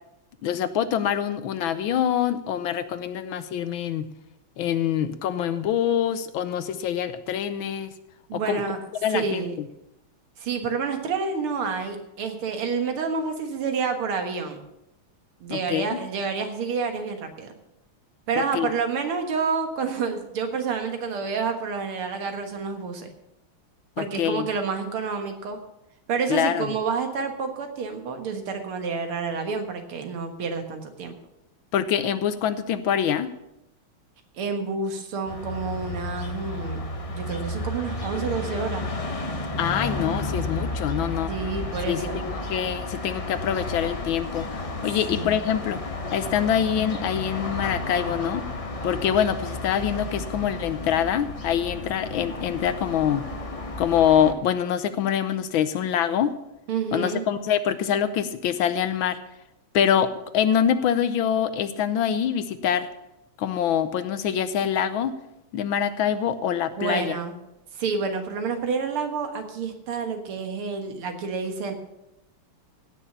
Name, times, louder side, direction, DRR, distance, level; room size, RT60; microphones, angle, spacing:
voice 1, 0.4-4.0 4.6-7.9 8.3-8.6 9.0-9.5 15.5-16.0 18.5-18.7 24.0-24.5 26.3-26.7 31.7-33.3 39.6-41.3 41.9-45.8 46.1-48.4 48.8-53.2 53.8-56.3 56.9-59.2 59.7-60.1 60.3-62.9 63.4-65.1 65.5-67.2, left 9 dB, 70° left, 12 dB, 1.4 m, -25 dB
voice 2, 8.3-8.8 9.1-9.5 10.4-14.6 15.4-17.5 18.3-23.1 24.0-25.6 26.1-31.1 34.4-38.9 41.3-42.2 45.1-45.3 56.7-57.2 66.8-67.3 67.7-71.7, right 5 dB, 75° right, 6 dB, 2.4 m, -29 dB
sound 1, 35.3-54.3, left 2 dB, 45° left, 0.4 m, -32 dB
16.5 x 6.6 x 6.8 m, 0.87 s
omnidirectional pair, 2.4 m